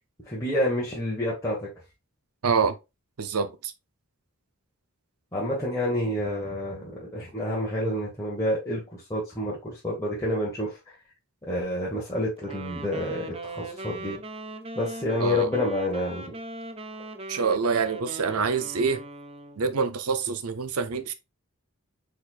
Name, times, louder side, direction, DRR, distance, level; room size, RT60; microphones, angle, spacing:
voice 1, 0.3-1.7 5.3-10.8 11.4-14.2 14.7-16.3, left 1 dB, 15° left, 1.3 m, -28 dB
voice 2, 2.4-2.7 3.2-3.7 15.2-15.5 17.3-19.0 19.6-21.1, right 5 dB, 75° right, 0.6 m, -26 dB
Wind instrument woodwind instrument, 12.4-19.6, right 2 dB, 25° right, 0.5 m, -39 dB
4.4 x 4.3 x 2.4 m
head